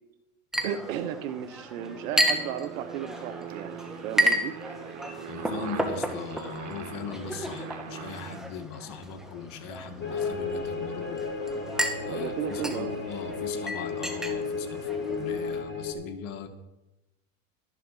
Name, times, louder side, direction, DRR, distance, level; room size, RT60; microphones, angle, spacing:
Chink clink, 0.5-15.6, equal, ahead, 2.3 m, -33 dB
voice 1, 0.6-4.5 12.0-13.0, right 9 dB, 75° right, 8 dB, 1.3 m, -34 dB
Aircraft, 1.7-8.4, right 8 dB, 45° right, 2.3 m, -41 dB
voice 2, 5.3-11.3 12.1-16.5, left 6 dB, 55° left, 7 dB, 2.0 m, -40 dB
sound 1, 10.0-15.9, left 4 dB, 25° left, 3.2 m, -33 dB
13.5 x 11.5 x 5.7 m, 0.98 s
hypercardioid pair, 100°, 40 cm